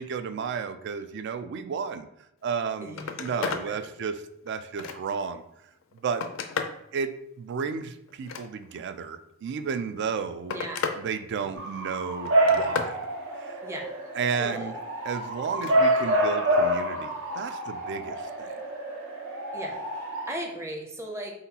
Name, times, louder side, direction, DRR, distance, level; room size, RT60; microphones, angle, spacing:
voice 1, 0.0-2.1 2.4-5.4 5.9-6.2 6.9-10.6 11.0-13.1 13.3-13.6 14.1-14.8 15.0-18.6, right 6 dB, 55° right, 10 dB, 0.3 m, -33 dB
Telephone, 2.5-2.6 2.9-3.7 4.2-5.3 5.8-6.8 8.1-8.9 9.9-11.0 11.4-11.8 12.2-13.0 15.4-15.8 17.2-17.3, left 5 dB, 70° left, 0.4 m, -34 dB
voice 2, 3.4-3.8 10.5-10.9 13.6-13.9 14.4-14.7 19.5-19.8 20.3-21.3, right 1 dB, 15° right, 0 dB, 0.6 m, -36 dB
Bark / Motor vehicle (road) / Siren, 11.6-20.3, right 1 dB, 75° right, 0.9 m, -27 dB
4.1 x 3.9 x 2.8 m, 0.81 s
head